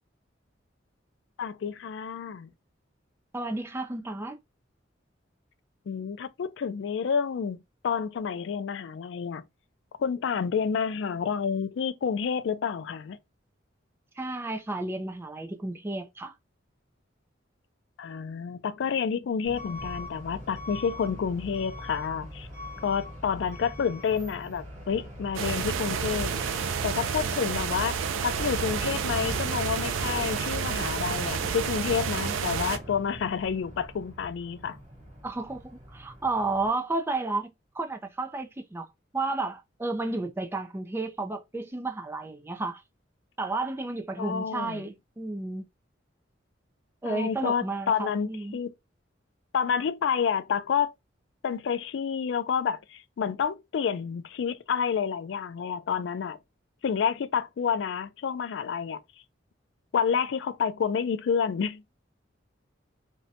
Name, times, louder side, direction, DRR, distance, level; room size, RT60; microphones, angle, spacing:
voice 1, 1.4-2.5 5.9-7.6 7.8-9.4 10.0-13.2 18.0-22.5 22.8-26.3 26.8-28.0 28.2-34.8 44.2-44.8 47.0-48.7 49.5-50.9 51.4-56.4 56.8-59.0 59.9-61.8, left 6 dB, 65° left, 0.3 m, -29 dB
voice 2, 3.3-4.4 14.2-16.3 35.2-35.6 35.9-38.9 39.1-42.8 43.4-45.7 47.0-48.6, right 2 dB, 10° right, 0.3 m, -32 dB
Truck / Alarm, 19.4-36.7, equal, 40° right, 0.8 m, -42 dB
sound 1, 25.3-32.8, right 6 dB, 90° right, 0.3 m, -30 dB
2.6 x 2.1 x 2.6 m
head